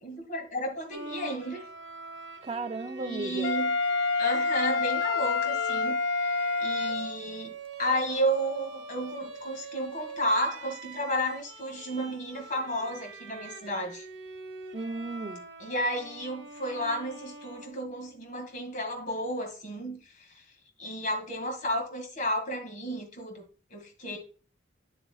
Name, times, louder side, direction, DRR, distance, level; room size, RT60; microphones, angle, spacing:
voice 1, 0.0-1.6 2.9-3.8 4.2-6.3 6.6-7.5 7.8-14.1 15.6-20.3 20.8-23.4 23.7-24.2, equal, 40° left, 2.1 m, -32 dB
Bowed string instrument, 0.9-18.3, right 3 dB, 70° right, 1.3 m, -44 dB
voice 2, 2.4-3.5 14.7-15.4, right 3 dB, 30° right, 0.5 m, -34 dB
Wind instrument woodwind instrument, 3.4-7.2, left 4 dB, 70° left, 0.3 m, -27 dB
8.7 x 8.0 x 2.4 m
head